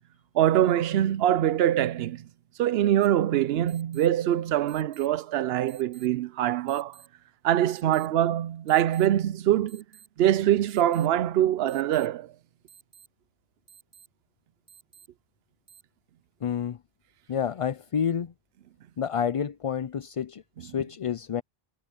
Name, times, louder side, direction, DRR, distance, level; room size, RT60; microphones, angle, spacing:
voice 1, 0.3-2.3 2.6-7.0 7.4-9.8 10.2-12.3, right 12 dB, 75° right, 0.8 m, -24 dB
sound 1, 3.0-3.1 3.7-4.1 4.7-5.1 5.7-6.1 6.7-7.1 7.7-8.1 8.7-9.1 9.7-10.1 10.7-11.1 11.7-12.1 12.7-13.1 13.7-14.1 14.7-15.1 15.7-15.8, right 7 dB, 30° right, 3.5 m, -53 dB
voice 2, 16.4-16.8 17.3-18.3 19.0-21.4, left 8 dB, 50° left, 0.4 m, -29 dB
omnidirectional pair, 1.0 m